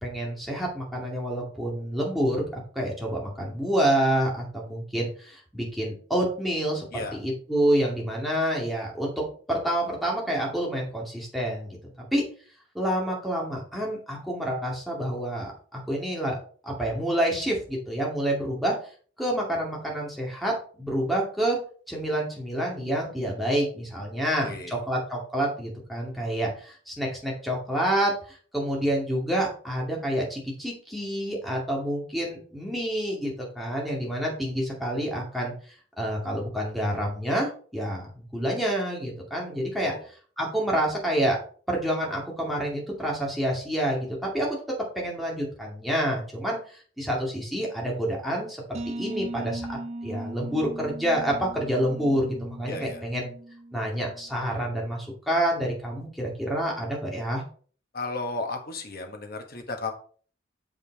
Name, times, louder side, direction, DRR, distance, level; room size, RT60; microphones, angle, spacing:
voice 1, 0.0-6.9 7.1-9.1 9.5-11.8 12.1-12.2 12.7-16.4 16.6-18.8 19.2-21.6 21.9-35.5 36.0-39.9 40.4-41.4 41.7-44.5 45.0-48.6 48.9-53.3 53.7-57.4, right 1 dB, ahead, -3 dB, 2.3 m, -28 dB
voice 2, 24.4-24.7 39.8-40.1 52.7-53.0 57.9-59.9, left 3 dB, 50° left, 5 dB, 1.4 m, -34 dB
sound 1, 48.7-54.3, right 1 dB, 35° right, 0.5 m, -38 dB
7.1 x 5.4 x 4.2 m, 0.43 s
head